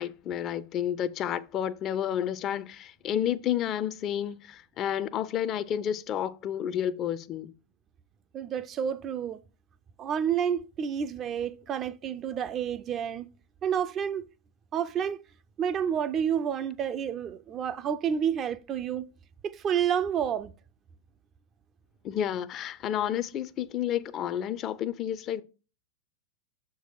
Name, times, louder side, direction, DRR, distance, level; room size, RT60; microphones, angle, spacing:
voice 1, 0.0-7.5 22.0-25.4, left 10 dB, 35° left, 0.4 m, -30 dB
voice 2, 8.3-9.4 10.0-13.3 13.6-14.2 14.7-15.2 15.6-19.0 19.4-20.5, right 8 dB, 30° right, 0.4 m, -29 dB
6.6 x 4.6 x 4.5 m
figure-of-eight pair, 90°, 0 cm